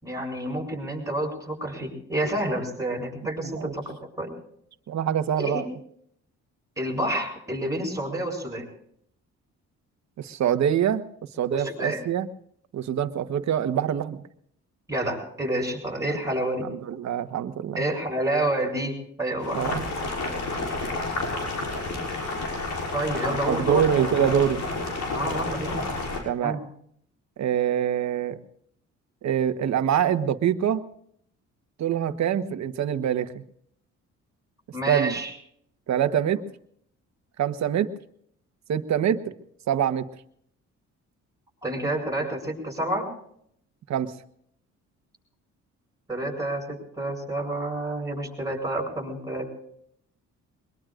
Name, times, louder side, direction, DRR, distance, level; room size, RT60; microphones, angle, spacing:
voice 1, 0.0-4.3 5.4-5.7 6.8-8.7 11.5-12.0 14.9-16.7 17.8-20.0 22.9-23.9 25.1-25.9 26.4-26.6 34.7-35.3 41.6-43.1 46.1-49.5, right 1 dB, 10° right, 2 dB, 7.4 m, -29 dB
voice 2, 3.4-3.7 4.9-5.7 10.2-11.0 11.4-12.3 12.7-14.2 16.1-16.2 16.6-17.8 19.5-19.8 23.5-24.6 26.2-26.6 27.4-28.4 29.2-30.9 31.8-33.4 34.9-35.2 35.9-36.4 37.4-37.9 38.7-39.3 39.7-40.1 43.9-44.1, right 9 dB, 65° right, 10 dB, 1.3 m, -25 dB
Boiling, 19.4-26.2, left 2 dB, 75° left, 6.3 m, -30 dB
23.0 x 22.0 x 2.5 m, 0.68 s
cardioid pair, 90°, 30 cm